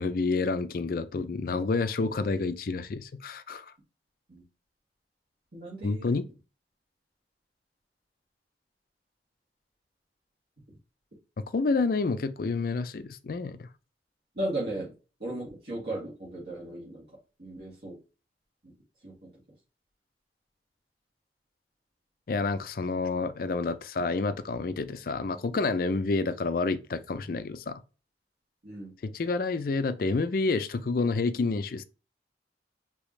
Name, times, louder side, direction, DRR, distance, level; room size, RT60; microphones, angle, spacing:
voice 1, 0.0-3.7 5.8-6.2 11.5-13.7 22.3-27.8 29.0-31.8, left 3 dB, 55° left, 0.4 m, -29 dB
voice 2, 5.5-6.1 14.4-14.9 15.2-17.0 17.4-18.0 19.0-19.3 28.6-28.9, right 1 dB, 60° right, 1.9 m, -36 dB
4.8 x 3.0 x 3.2 m
head